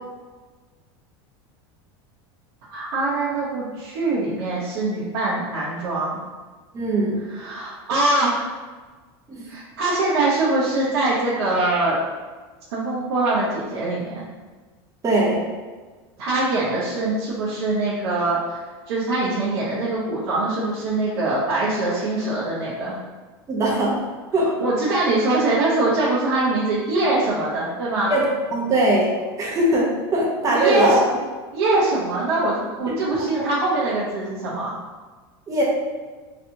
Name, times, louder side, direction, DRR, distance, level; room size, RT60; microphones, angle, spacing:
voice 1, 2.7-6.2 7.3-8.5 9.5-12.0 12.7-14.2 16.2-18.6 18.9-23.0 24.6-28.1 30.5-31.0 31.5-34.7, right 2 dB, 80° right, -9 dB, 0.8 m, -23 dB
voice 2, 6.7-7.2 9.3-9.5 15.0-15.4 23.5-24.0 24.3-24.5 28.1-28.3 28.5-29.1 29.4-31.0 31.7-31.8 32.9-33.0 35.5-35.6, right 1 dB, 25° right, -5 dB, 0.8 m, -20 dB
3.2 x 2.9 x 2.7 m, 1.4 s
supercardioid pair, 115°, 13 cm